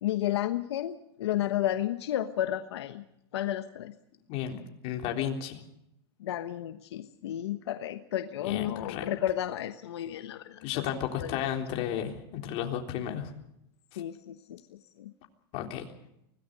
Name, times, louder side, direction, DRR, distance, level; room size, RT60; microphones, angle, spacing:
voice 1, 0.0-3.0 3.3-3.9 6.2-10.9 11.2-11.4 14.0-15.1, left 12 dB, 85° left, 8 dB, 1.2 m, -32 dB
voice 2, 4.3-5.6 8.4-9.1 10.6-13.3 15.5-15.9, left 9 dB, 45° left, 3 dB, 3.8 m, -33 dB
25.0 x 18.0 x 6.7 m, 0.80 s
supercardioid pair, 140°, 14 cm